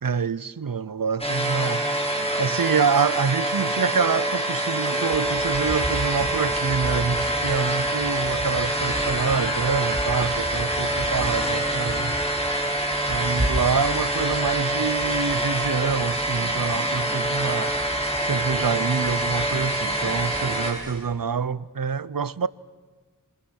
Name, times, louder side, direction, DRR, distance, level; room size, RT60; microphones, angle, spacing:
voice 1, 0.0-12.2 13.1-17.7 18.2-22.5, right 6 dB, 80° right, 0.8 m, -26 dB
sound 1, 1.2-20.7, right 1 dB, 15° left, 6.1 m, -25 dB
sound 2, 5.1-21.1, equal, 10° right, 6.2 m, -36 dB
28.0 x 27.5 x 6.4 m
wide cardioid pair, 40°, 34 cm